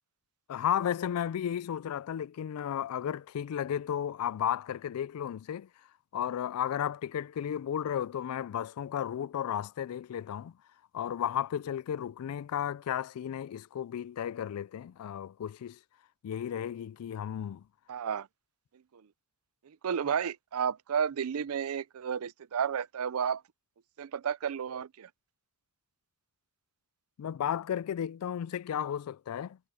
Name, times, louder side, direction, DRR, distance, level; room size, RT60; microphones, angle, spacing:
voice 1, 0.5-5.7 6.1-10.6 10.9-15.8 16.2-17.7 27.2-29.6, left 9 dB, 90° left, 0.3 m, -34 dB
voice 2, 17.9-18.3 18.9-19.0 19.6-23.4 24.0-25.1, right 7 dB, 85° right, 0.5 m, -32 dB
head